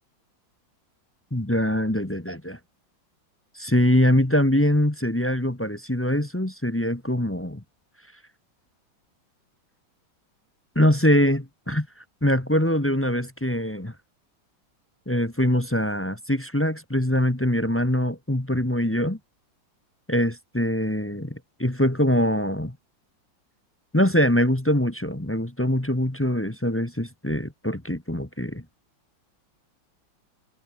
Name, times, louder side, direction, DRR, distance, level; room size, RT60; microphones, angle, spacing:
voice 1, 1.3-2.6 3.5-7.6 10.7-11.9 12.2-13.9 15.1-19.2 20.1-22.7 23.9-28.6, left 1 dB, 10° left, 1.0 m, -23 dB
omnidirectional pair, 2.1 m